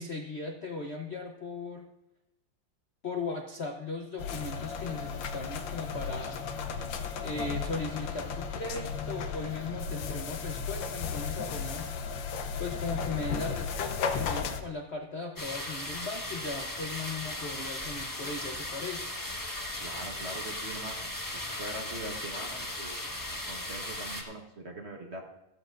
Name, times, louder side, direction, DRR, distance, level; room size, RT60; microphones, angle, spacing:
voice 1, 0.0-1.8 3.0-6.4 7.2-11.9 12.6-19.0, left 3 dB, 50° left, 2 dB, 0.8 m, -37 dB
sound 1, 4.2-14.6, left 6 dB, 75° left, 1.5 m, -35 dB
sound 2, 15.4-24.2, left 1 dB, 15° left, 1.0 m, -37 dB
voice 2, 19.8-21.1 21.3-25.2, right 2 dB, 40° right, 2 dB, 1.3 m, -42 dB
14.5 x 13.0 x 2.5 m, 0.91 s
omnidirectional pair, 2.1 m